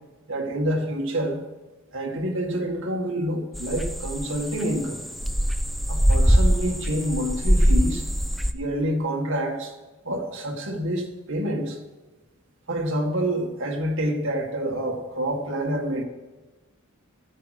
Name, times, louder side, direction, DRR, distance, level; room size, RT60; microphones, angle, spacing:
voice 1, 0.3-1.4 1.9-5.0 5.9-8.0 8.5-9.7 10.0-11.8 12.7-16.0, right 1 dB, 65° right, 1 dB, 2.0 m, -27 dB
sound 1, 3.5-8.5, equal, ahead, 0.5 m, -22 dB
14.0 x 8.7 x 5.0 m, 1.2 s
head